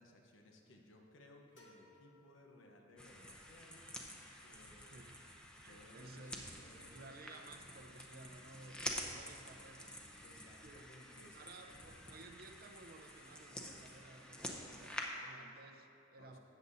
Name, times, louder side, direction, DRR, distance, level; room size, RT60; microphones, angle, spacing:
voice 1, 0.0-3.8 4.4-5.0 5.7-7.1 10.2-12.1 16.2-16.4, left 1 dB, 80° left, 2 dB, 1.0 m, -61 dB
sound 1, 1.6-3.3, left 1 dB, 65° left, 1.3 m, -66 dB
sound 2, 3.0-15.1, equal, 5° left, 0.7 m, -49 dB
voice 2, 4.8-5.3 5.5-6.6 6.9-10.1 10.6-11.0 11.3-16.4, right 2 dB, 50° right, 6 dB, 0.6 m, -56 dB
13.0 x 8.2 x 2.7 m, 2.7 s
head